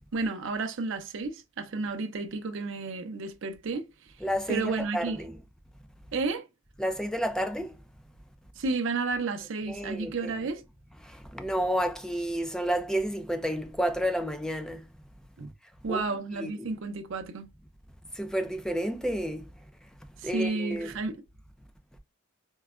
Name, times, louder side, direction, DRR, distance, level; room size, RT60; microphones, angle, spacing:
voice 1, 0.1-3.9 4.5-5.3 6.1-6.4 8.6-10.6 15.4-15.5 15.8-17.5 20.2-21.2, right 3 dB, 65° right, 0.5 m, -32 dB
voice 2, 4.2-5.4 6.8-7.8 9.7-10.3 11.0-14.9 15.9-16.0 16.4-16.7 18.1-19.5 20.2-20.9, equal, 5° left, 0.4 m, -30 dB
4.5 x 2.1 x 2.3 m
head